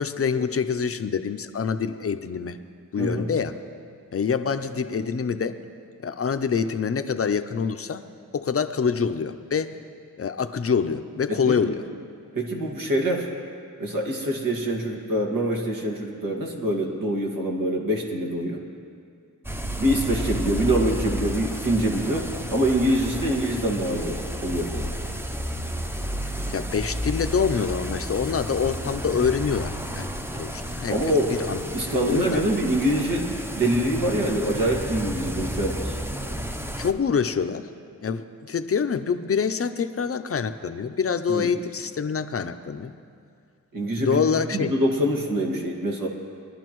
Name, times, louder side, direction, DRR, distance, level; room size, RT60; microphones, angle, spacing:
voice 1, 0.0-2.6 2.9-3.6 4.1-5.6 6.0-8.0 8.3-9.7 10.2-11.8 26.5-30.1 30.3-31.7 32.0-32.4 36.8-37.7 38.0-42.9 44.0-44.7, left 6 dB, 45° left, 9 dB, 0.5 m, -26 dB
voice 2, 3.0-3.3 11.5-11.7 12.4-13.3 13.8-18.6 19.8-24.9 30.9-31.3 31.7-36.0 41.3-41.5 43.7-44.2 44.5-46.1, right 1 dB, 80° right, 0 dB, 2.0 m, -25 dB
sound 1, 19.4-36.9, equal, 5° right, 0.6 m, -32 dB
22.0 x 11.5 x 3.1 m, 2.3 s
wide cardioid pair, 100°, 33 cm